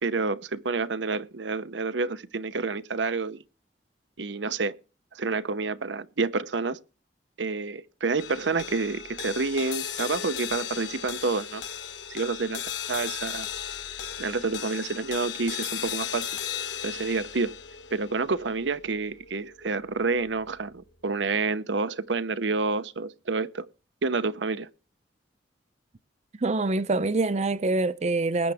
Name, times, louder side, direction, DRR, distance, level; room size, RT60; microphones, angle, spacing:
voice 1, 0.0-3.4 4.2-4.8 5.1-6.8 7.4-11.6 12.1-12.6 12.9-13.5 14.2-16.3 16.8-17.5 17.9-23.7 24.0-24.7, right 4 dB, 90° right, 0.8 m, -28 dB
sound 1, 8.2-20.7, left 8 dB, 85° left, 1.3 m, -36 dB
voice 2, 26.4-28.5, right 2 dB, 40° right, 0.6 m, -25 dB
20.5 x 8.8 x 3.5 m
head